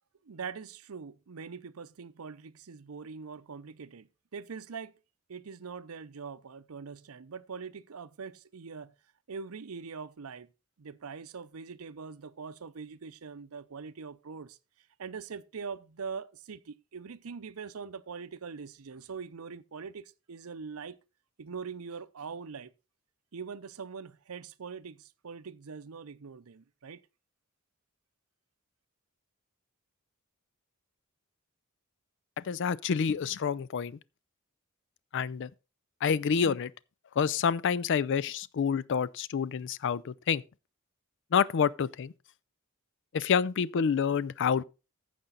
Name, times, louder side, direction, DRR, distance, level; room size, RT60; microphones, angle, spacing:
voice 1, 0.2-4.9 5.3-8.9 9.3-10.5 10.8-14.6 15.0-21.0 21.4-22.7 23.3-27.0, right 5 dB, 80° right, 0.6 m, -43 dB
voice 2, 32.4-34.0 35.1-35.5 36.0-36.7 37.2-40.4 41.3-42.1 43.1-44.6, left 6 dB, 60° left, 0.4 m, -28 dB
14.5 x 5.1 x 3.9 m
head